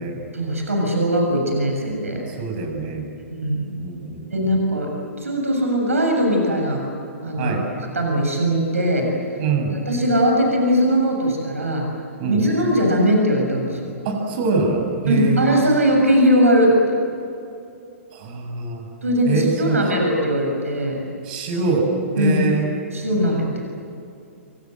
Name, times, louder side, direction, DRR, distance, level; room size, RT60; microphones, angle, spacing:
voice 1, 0.3-2.2 3.3-3.7 4.3-4.9 5.2-6.9 7.2-7.5 7.9-9.1 9.7-11.9 12.3-13.9 15.1-17.0 19.0-21.0 22.2-22.4 22.9-23.6, equal, 75° right, 1 dB, 7.2 m, -20 dB
voice 2, 2.3-3.1 3.8-4.3 7.4-7.6 9.4-9.8 12.2-12.4 14.0-15.5 18.1-18.9 19.3-19.8 21.2-22.7, right 4 dB, 40° right, 2 dB, 7.5 m, -24 dB
29.0 x 24.5 x 7.9 m, 2.6 s
figure-of-eight pair, 120°, 8 cm